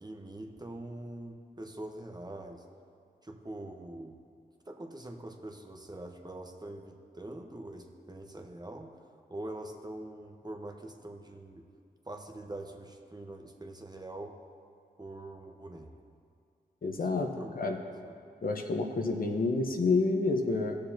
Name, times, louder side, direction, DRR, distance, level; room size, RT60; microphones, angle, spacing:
voice 1, 0.0-2.6 3.2-4.2 4.7-9.0 9.3-11.7 12.0-14.4 15.0-15.9 16.9-17.5 18.0-18.2, right 1 dB, 25° right, 3 dB, 1.1 m, -44 dB
voice 2, 16.8-17.8 18.4-20.8, left 3 dB, 55° left, 3 dB, 1.0 m, -29 dB
17.0 x 6.7 x 2.9 m, 2.3 s
cardioid pair, 45°, 18 cm